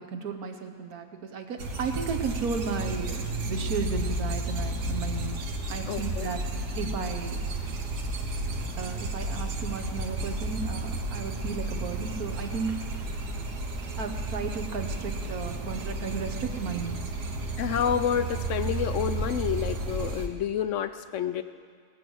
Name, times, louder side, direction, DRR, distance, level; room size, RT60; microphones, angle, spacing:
voice 1, 0.0-7.4 8.8-12.7 14.0-17.1, right 5 dB, 65° right, 6 dB, 1.5 m, -34 dB
sound 1, 1.6-20.3, right 2 dB, 80° right, 1.7 m, -32 dB
voice 2, 5.9-6.3 17.6-21.4, left 9 dB, 70° left, 10 dB, 0.7 m, -29 dB
19.0 x 8.0 x 6.2 m, 2.1 s
omnidirectional pair, 1.7 m